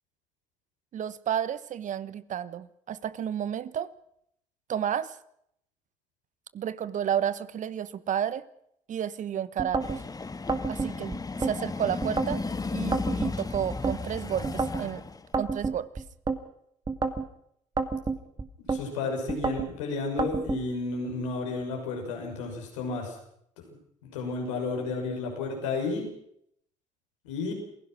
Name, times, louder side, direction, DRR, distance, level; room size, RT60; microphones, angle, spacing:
voice 1, 0.9-3.9 4.7-5.1 6.5-8.4 8.9-10.0 10.7-12.4 12.7-15.0 15.4-15.9, right 9 dB, 55° right, 16 dB, 1.2 m, -31 dB
sound 1, 9.6-10.0 10.5-11.6 12.0-12.4 12.9-14.0 14.4-14.9 15.3-16.4 16.9-17.3 17.8-18.8 19.3-19.7 20.2-20.6, right 4 dB, 30° right, 2.3 m, -29 dB
sound 2, 9.8-15.3, left 3 dB, 25° left, 1.8 m, -34 dB
voice 2, 18.7-23.1 24.0-26.1 27.2-27.5, left 3 dB, 85° left, 1 dB, 6.2 m, -32 dB
28.0 x 16.5 x 6.2 m, 0.72 s
hypercardioid pair, 55°, 15 cm